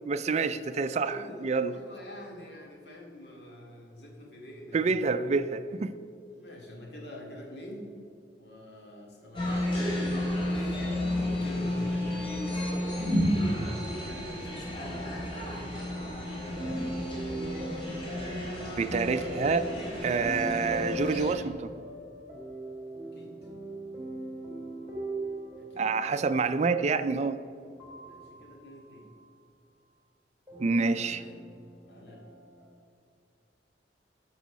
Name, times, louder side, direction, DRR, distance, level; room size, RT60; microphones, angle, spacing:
voice 1, 0.1-1.7 4.7-5.9 18.8-19.7 20.0-21.7 25.8-27.4 30.6-31.2, right 4 dB, 40° right, 11 dB, 0.4 m, -27 dB
voice 2, 1.0-5.0 6.3-7.9 8.4-9.8 10.5-10.8 11.2-15.7 20.4-20.7 23.1-23.5 25.6-25.9 28.0-29.1 31.0-31.4 31.9-32.3, left 1 dB, 65° left, -1 dB, 2.4 m, -45 dB
sound 1, 9.3-21.3, left 1 dB, 30° left, 2.9 m, -32 dB
sound 2, 16.4-29.2 30.5-32.7, right 1 dB, 15° right, 2.7 m, -40 dB
12.5 x 6.2 x 6.2 m, 2.3 s
head